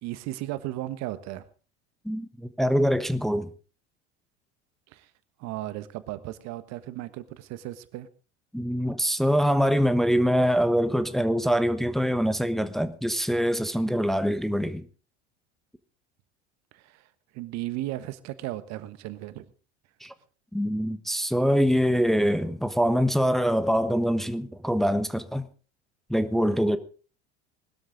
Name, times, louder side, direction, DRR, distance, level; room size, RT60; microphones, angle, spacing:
voice 1, 0.0-1.5 4.9-5.1 5.4-8.1 16.7-19.4, right 15 dB, 50° right, 1.4 m, -35 dB
voice 2, 2.0-3.5 8.5-14.9 20.0-20.1 20.5-25.5 26.1-26.8, equal, ahead, 1.2 m, -24 dB
20.0 x 13.0 x 3.8 m
hypercardioid pair, 75°, 34 cm